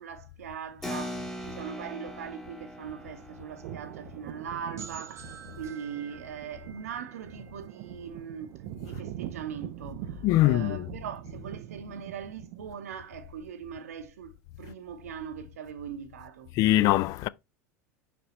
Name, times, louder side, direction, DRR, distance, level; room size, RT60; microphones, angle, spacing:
voice 1, 0.0-8.6 8.8-16.5, right 7 dB, 70° right, 0.8 m, -40 dB
Keyboard (musical), 0.8-6.8, left 1 dB, 5° left, 1.2 m, -42 dB
sound 1, 2.6-13.0, right 14 dB, 55° right, 0.4 m, -43 dB
sound 2, 4.8-8.4, right 6 dB, 35° right, 0.9 m, -49 dB
voice 2, 10.2-10.9 16.5-17.3, left 16 dB, 45° left, 0.4 m, -22 dB
6.0 x 5.1 x 3.1 m
figure-of-eight pair, 80°, 8 cm